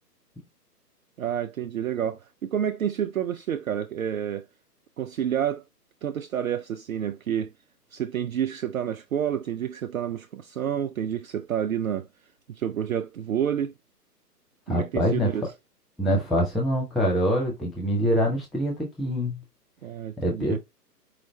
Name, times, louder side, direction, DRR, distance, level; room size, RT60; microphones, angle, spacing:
voice 1, 1.2-4.5 5.0-5.6 6.0-7.5 7.9-12.1 12.5-13.7 14.7-15.5 19.8-20.6, right 9 dB, 60° right, 0.5 m, -29 dB
voice 2, 14.7-15.3 16.0-19.4 20.2-20.6, equal, ahead, 0.3 m, -25 dB
4.8 x 2.0 x 4.1 m
figure-of-eight pair, 130°, 49 cm